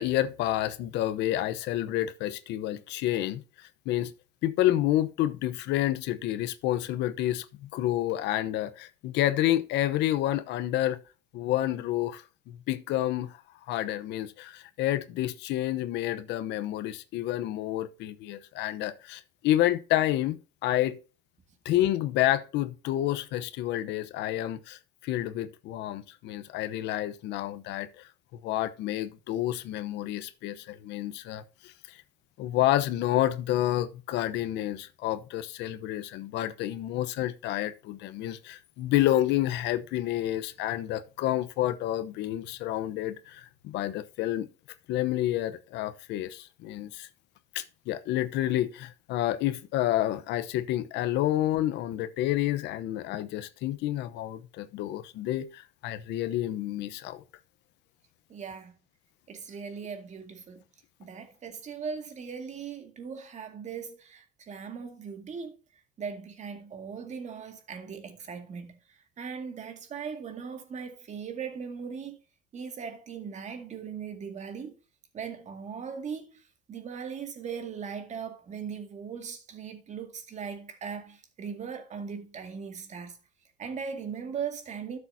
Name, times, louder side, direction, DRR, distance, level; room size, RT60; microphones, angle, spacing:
voice 1, 0.0-4.1 4.4-11.0 11.3-13.4 13.7-21.0 21.6-28.1 28.4-32.0 32.4-44.5 44.9-47.1 47.5-57.2, left 13 dB, 70° left, 0.9 m, -29 dB
voice 2, 58.3-58.7 59.3-60.6 61.0-65.6 66.0-72.2 72.5-74.7 75.1-76.4 76.7-83.2 83.6-85.0, right 6 dB, 40° right, 2.1 m, -39 dB
12.5 x 6.8 x 2.7 m
cardioid pair, 120°, 19 cm